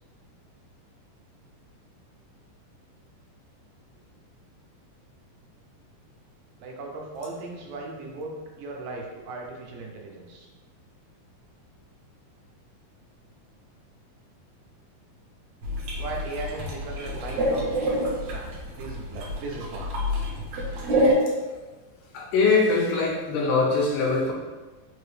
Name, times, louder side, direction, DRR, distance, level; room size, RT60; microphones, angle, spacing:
voice 1, 6.6-10.5 16.0-19.9, right 2 dB, 85° right, 0 dB, 2.4 m, -37 dB
sound 1, 15.6-21.1, equal, 70° right, 1.9 m, -27 dB
voice 2, 22.1-24.3, left 4 dB, 85° left, -1 dB, 2.2 m, -22 dB
5.5 x 2.9 x 3.1 m, 1.2 s
omnidirectional pair, 3.7 m